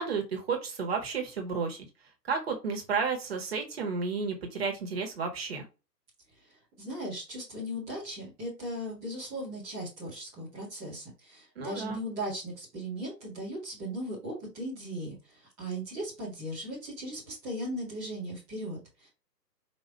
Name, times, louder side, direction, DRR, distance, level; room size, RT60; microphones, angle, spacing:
voice 1, 0.0-1.9 2.3-5.6 11.5-12.0, right 5 dB, 35° right, 3 dB, 1.5 m, -32 dB
voice 2, 6.8-19.1, equal, 5° right, -11 dB, 0.8 m, -38 dB
5.3 x 2.9 x 3.3 m, 0.29 s
figure-of-eight pair, 135°, 50 cm